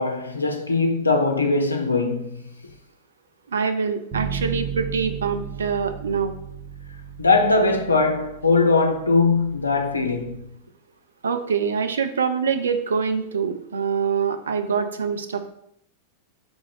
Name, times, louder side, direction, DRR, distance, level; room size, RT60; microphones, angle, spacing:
voice 1, 0.0-2.4 7.2-10.5, left 3 dB, 80° left, 0.3 m, -21 dB
voice 2, 3.5-6.4 11.2-15.5, right 6 dB, 70° right, 0.3 m, -25 dB
Bass guitar, 4.1-10.4, right 8 dB, 30° right, 0.9 m, -35 dB
3.5 x 2.5 x 3.1 m
figure-of-eight pair, 90°, 0 cm